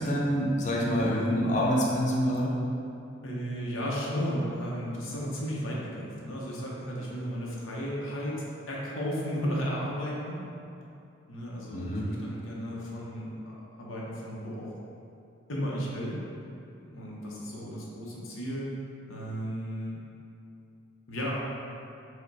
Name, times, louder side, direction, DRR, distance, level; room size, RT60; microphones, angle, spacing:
voice 1, 0.0-2.5 11.7-12.1, equal, 35° left, -4 dB, 0.5 m, -26 dB
voice 2, 3.2-8.4 8.7-10.5 11.3-14.7 15.5-16.2 16.8-18.6 19.1-20.0 21.1-21.3, equal, 80° left, -5 dB, 0.8 m, -34 dB
4.8 x 2.1 x 4.1 m, 2.6 s
head